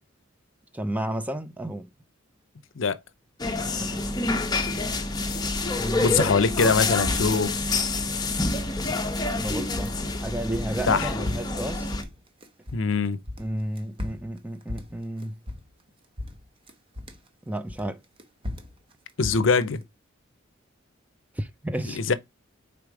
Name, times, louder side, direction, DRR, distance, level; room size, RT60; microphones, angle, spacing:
voice 1, 0.7-1.9 3.6-4.0 5.8-6.3 9.3-10.0 10.2-11.9 13.4-15.4 17.5-18.0 21.3-22.0, right 1 dB, 5° right, 0.4 m, -32 dB
sound 1, 3.4-12.0, left 3 dB, 20° left, 0.9 m, -27 dB
voice 2, 6.0-7.6 10.9-11.1 12.7-13.2 19.2-19.8 21.9-22.1, left 4 dB, 65° left, 0.6 m, -23 dB
sound 2, 9.5-12.9 13.2-15.9 16.2-17.3 17.7-19.8, left 2 dB, 25° right, 0.9 m, -36 dB
5.0 x 4.0 x 4.7 m
head